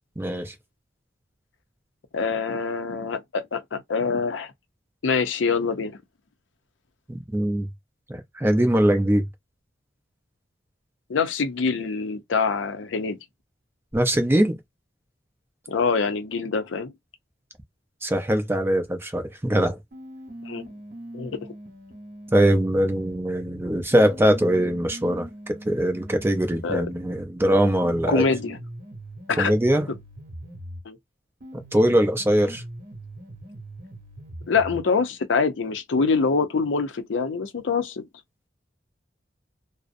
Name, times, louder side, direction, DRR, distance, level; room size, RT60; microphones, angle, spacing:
voice 1, 0.2-0.5 7.1-7.7 8.1-9.3 13.9-14.6 18.0-19.8 22.3-28.2 29.4-29.9 31.7-32.6, right 1 dB, 15° right, 0.5 m, -22 dB
voice 2, 2.1-4.5 5.0-6.0 11.1-13.2 15.7-16.9 20.4-20.6 21.1-21.4 26.6-26.9 28.1-28.6 29.3-29.5 30.9-31.0 34.5-38.0, left 5 dB, 85° left, 0.5 m, -25 dB
sound 1, 19.9-23.2 23.9-30.9 31.4-34.9, right 1 dB, 55° right, 1.0 m, -41 dB
2.6 x 2.0 x 2.4 m
head